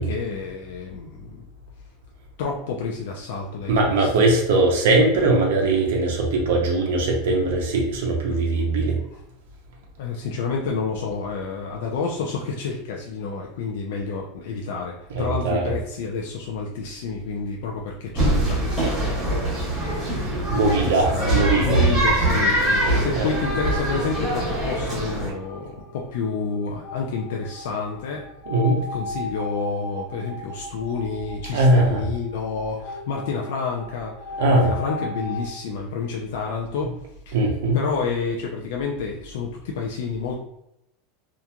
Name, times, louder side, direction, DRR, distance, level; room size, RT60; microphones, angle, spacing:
voice 1, 0.0-1.4 2.4-4.1 8.3-8.4 8.9-9.1 10.0-20.3 20.6-28.2 28.9-36.9 37.3-37.4 37.7-40.3, left 5 dB, 70° left, -1 dB, 0.4 m, -29 dB
voice 2, 3.7-9.0 15.1-15.6 20.5-21.8 22.7-23.3 28.5-28.8 31.5-32.0 34.4-34.7 37.3-37.8, right 2 dB, 80° right, -1 dB, 0.6 m, -20 dB
sound 1, 18.2-25.3, right 1 dB, 15° right, 0.9 m, -23 dB
sound 2, 22.2-35.5, left 1 dB, 25° left, 0.7 m, -37 dB
2.9 x 2.4 x 2.2 m, 0.82 s
supercardioid pair, 175°, 0 cm